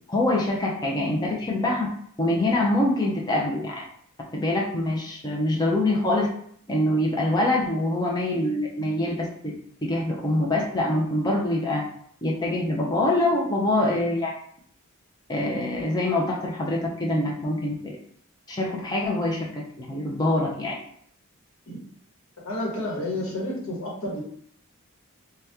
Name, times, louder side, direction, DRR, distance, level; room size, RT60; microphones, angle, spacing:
voice 1, 0.1-1.9 2.2-3.8 4.3-6.3 6.7-9.5 9.8-11.8 12.2-14.3 15.3-18.0 18.5-20.8, left 1 dB, 20° left, -2 dB, 0.5 m, -25 dB
voice 2, 22.4-24.2, left 1 dB, 75° left, -3 dB, 1.1 m, -30 dB
2.8 x 2.2 x 3.4 m, 0.65 s
head